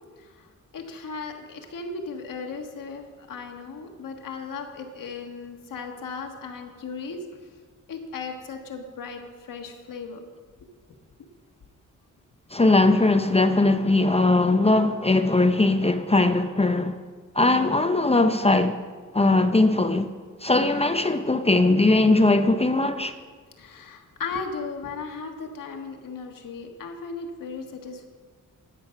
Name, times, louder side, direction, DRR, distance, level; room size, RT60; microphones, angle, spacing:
voice 1, 0.7-7.2 7.9-10.2 23.6-28.1, left 4 dB, 80° left, 1.6 m, -36 dB
voice 2, 12.5-17.0 17.3-18.8 19.1-20.1 20.4-23.1, left 2 dB, 20° left, 0.6 m, -20 dB
13.0 x 8.4 x 5.8 m
cardioid pair, 90°, 32 cm